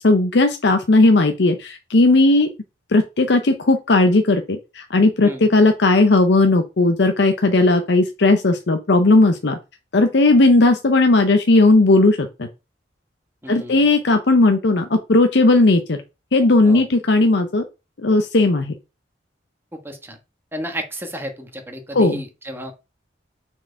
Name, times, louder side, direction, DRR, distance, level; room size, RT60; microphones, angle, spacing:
voice 1, 0.0-2.5 2.9-9.6 9.9-12.5 13.5-16.0 16.3-17.6 18.0-18.7 21.9-22.2, left 2 dB, 65° left, 6 dB, 0.7 m, -16 dB
voice 2, 13.4-13.9 16.6-16.8 19.7-20.2 20.5-22.7, equal, 15° right, 4 dB, 1.3 m, -32 dB
6.1 x 4.5 x 4.5 m, 0.27 s
head